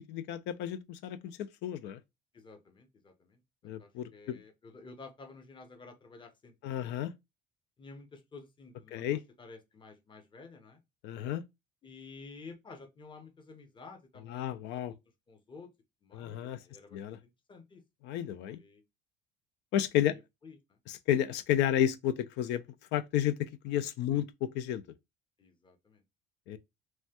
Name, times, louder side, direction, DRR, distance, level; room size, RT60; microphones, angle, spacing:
voice 1, 0.0-2.0 3.6-4.4 6.6-7.1 8.9-9.2 11.0-11.4 14.3-14.9 16.1-16.6 16.9-17.2 18.0-18.6 19.7-20.1 20.9-22.6 22.9-24.8 26.5-26.6, left 11 dB, 70° left, 0.4 m, -32 dB
voice 2, 2.3-6.9 7.8-9.0 9.4-10.8 11.8-15.0 15.3-15.7 16.0-17.8 18.5-18.8 20.0-20.6 24.1-24.2 25.4-26.0, left 4 dB, 25° left, 0.8 m, -52 dB
3.1 x 2.3 x 2.8 m
supercardioid pair, 85°, 19 cm